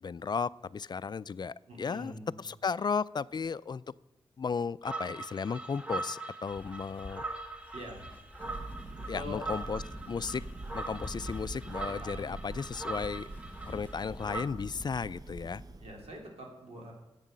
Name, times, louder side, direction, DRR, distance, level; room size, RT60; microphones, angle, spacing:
voice 1, 0.0-3.8 4.4-7.2 9.1-10.4 10.7-13.2 13.7-15.6, left 5 dB, 45° left, 18 dB, 0.3 m, -35 dB
voice 2, 1.7-2.4 7.7-8.1 9.0-9.5 12.0-12.4 15.8-16.9, equal, 85° right, 0 dB, 3.4 m, -44 dB
sound 1, 4.8-14.4, right 2 dB, 10° right, 1.5 m, -41 dB
sound 2, 6.5-14.9, left 1 dB, 20° left, 1.6 m, -50 dB
Thunder, 8.4-16.3, right 2 dB, 40° right, 0.9 m, -44 dB
10.5 x 8.2 x 7.6 m, 0.99 s
wide cardioid pair, 80°, 10 cm